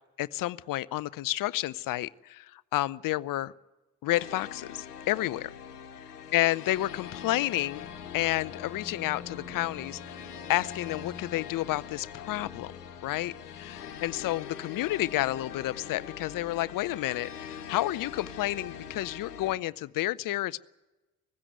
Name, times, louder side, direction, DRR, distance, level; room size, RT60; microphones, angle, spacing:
voice 1, 0.2-3.5 4.0-5.5 6.0-7.9 8.1-12.7 13.0-20.6, left 16 dB, 45° left, 19 dB, 0.7 m, -30 dB
sound 1, 4.1-19.6, left 7 dB, 85° left, 1.2 m, -43 dB
sound 2, 8.0-13.4 13.7-13.8, right 10 dB, 55° right, 1.8 m, -58 dB
19.0 x 16.0 x 9.4 m, 1.1 s
figure-of-eight pair, 50°, 45 cm